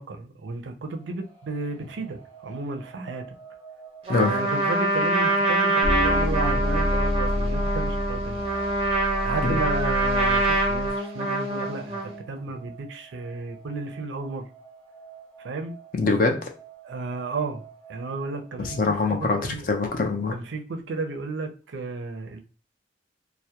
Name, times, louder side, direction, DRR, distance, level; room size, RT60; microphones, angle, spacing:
voice 1, 0.0-3.4 4.1-8.4 9.2-14.4 15.4-15.8 16.8-17.6 17.9-19.7 20.3-22.4, right 3 dB, 85° right, 4 dB, 0.4 m, -33 dB
sound 1, 0.9-19.0, right 9 dB, 10° left, 0.6 m, -48 dB
Trumpet, 4.1-12.2, right 1 dB, 30° right, 0.5 m, -25 dB
sound 2, 5.8-10.9, equal, 75° left, 0.8 m, -28 dB
voice 2, 15.9-16.5 18.6-20.3, left 3 dB, 45° left, 3 dB, 0.4 m, -24 dB
2.2 x 2.0 x 2.7 m, 0.35 s
head